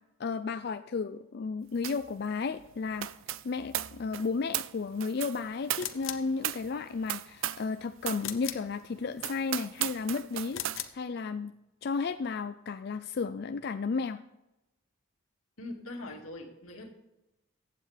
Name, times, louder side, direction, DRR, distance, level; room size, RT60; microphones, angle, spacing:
voice 1, 0.2-3.1 3.4-10.6 10.9-11.5 11.8-14.2, left 4 dB, 50° left, 10 dB, 0.4 m, -33 dB
sound 1, 1.8-2.1 2.4-7.7 8.0-8.3 8.7-8.8 9.2-10.8, right 12 dB, 75° right, 0.5 m, -36 dB
sound 2, 5.8-6.3 8.2-8.7 10.5-11.0, left 11 dB, 70° left, 0.9 m, -38 dB
voice 2, 15.6-16.9, left 2 dB, 90° left, 2 dB, 2.1 m, -42 dB
15.0 x 8.7 x 3.4 m, 0.96 s
head